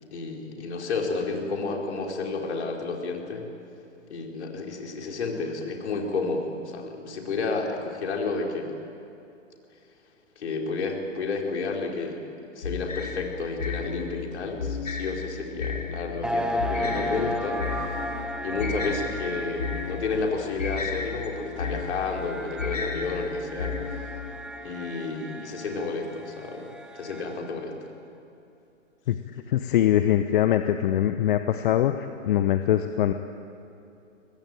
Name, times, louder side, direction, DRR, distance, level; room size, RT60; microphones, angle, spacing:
voice 1, 0.1-3.5 4.1-8.8 10.4-12.3 12.5-18.0 18.4-23.8 24.6-27.8, left 3 dB, 60° left, 1 dB, 4.7 m, -31 dB
sound 1, 12.6-24.3, left 5 dB, 80° left, 2.7 m, -33 dB
sound 2, 16.2-27.6, equal, ahead, 1.3 m, -35 dB
voice 2, 29.5-31.9 32.3-33.1, left 11 dB, 40° left, 9 dB, 1.0 m, -22 dB
24.0 x 19.5 x 9.2 m, 2.7 s
figure-of-eight pair, 120°, 38 cm